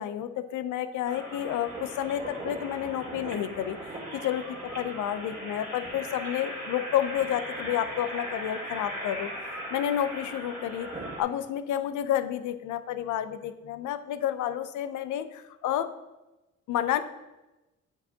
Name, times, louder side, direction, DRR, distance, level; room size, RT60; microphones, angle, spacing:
voice 1, 0.0-10.9 11.2-15.9 16.7-17.0, left 11 dB, 80° left, 11 dB, 0.6 m, -30 dB
sound 1, 1.0-11.2, right 1 dB, 25° right, 2.2 m, -38 dB
8.8 x 4.7 x 2.8 m, 1.0 s
cardioid pair, 90°, 30 cm